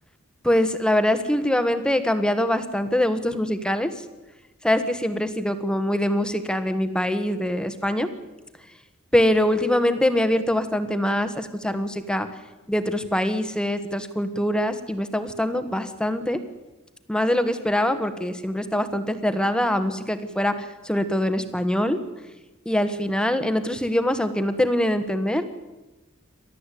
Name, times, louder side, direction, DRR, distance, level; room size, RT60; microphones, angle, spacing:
voice 1, 0.4-4.0 4.6-8.1 9.1-12.3 12.7-16.4 17.1-22.0 22.6-25.4, left 1 dB, 5° left, 9 dB, 1.4 m, -23 dB
28.5 x 13.0 x 8.5 m, 1.1 s
head